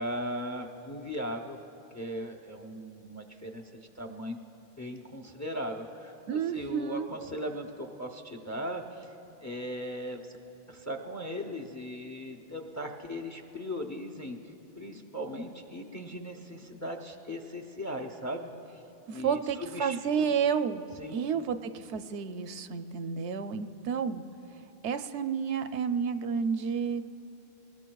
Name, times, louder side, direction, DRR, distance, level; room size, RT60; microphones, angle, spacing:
voice 1, 0.0-1.6 1.9-9.1 9.4-10.4 10.7-14.4 14.8-18.5 19.1-20.3 21.0-21.2, equal, 20° left, 4 dB, 0.6 m, -38 dB
voice 2, 6.3-7.1 19.1-20.8 21.1-24.2 24.8-27.1, right 6 dB, 80° right, 10 dB, 0.9 m, -30 dB
23.0 x 20.0 x 2.3 m, 2.8 s
omnidirectional pair, 1.2 m